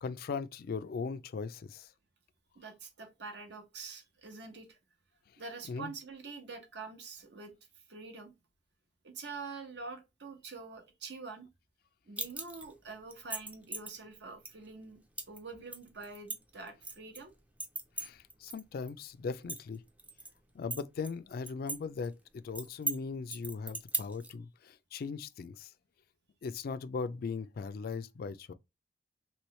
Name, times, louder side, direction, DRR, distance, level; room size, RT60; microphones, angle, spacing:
voice 1, 0.0-1.9 5.7-5.9 18.0-19.8 20.5-25.7 26.4-28.5, left 5 dB, 55° left, 0.3 m, -39 dB
voice 2, 2.5-4.8 5.4-7.5 7.9-8.3 9.0-11.5 12.1-15.0 15.3-17.3, right 4 dB, 65° right, 0.9 m, -46 dB
sound 1, 12.2-12.7 13.1-13.9 14.4-14.5 15.2-15.4 15.7-17.2 17.6-18.6 18.9-19.0 19.3-20.3 20.7-21.8 22.0-22.1 22.5-23.0 23.3-24.3, right 2 dB, 10° right, 0.4 m, -37 dB
3.1 x 2.9 x 3.0 m
head